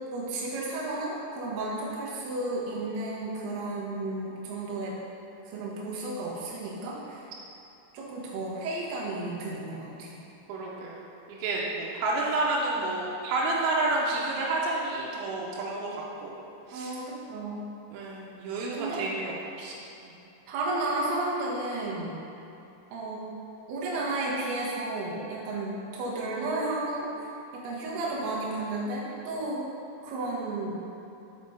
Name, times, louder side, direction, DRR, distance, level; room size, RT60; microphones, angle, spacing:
voice 1, 0.1-5.0 5.5-7.3 7.9-10.2 16.7-17.6 18.7-19.0 20.5-22.1 22.9-23.2 23.7-29.6 30.0-30.8, right 2 dB, 70° right, -6 dB, 2.6 m, -33 dB
voice 2, 10.5-11.0 11.3-16.4 16.7-16.9 17.9-20.1, right 2 dB, 85° right, -4 dB, 3.4 m, -30 dB
6.9 x 5.1 x 4.3 m, 2.8 s
omnidirectional pair, 5.8 m